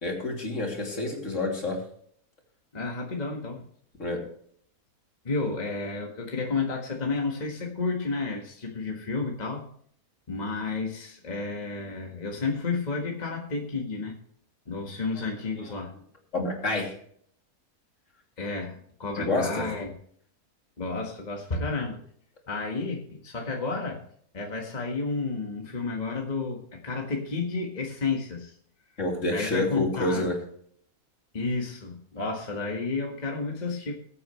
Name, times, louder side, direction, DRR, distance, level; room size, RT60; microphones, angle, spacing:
voice 1, 0.0-1.8 4.0-4.2 15.6-15.7 16.3-17.0 19.1-19.7 29.0-30.4, left 2 dB, 55° left, 0 dB, 3.3 m, -28 dB
voice 2, 2.7-3.6 5.2-9.7 10.3-14.1 14.7-15.9 18.4-19.9 20.8-22.0 22.5-24.0 24.3-28.6 29.2-30.3 31.3-33.9, left 3 dB, 30° left, 0 dB, 1.7 m, -31 dB
21.5 x 8.5 x 3.2 m, 0.63 s
omnidirectional pair, 1.5 m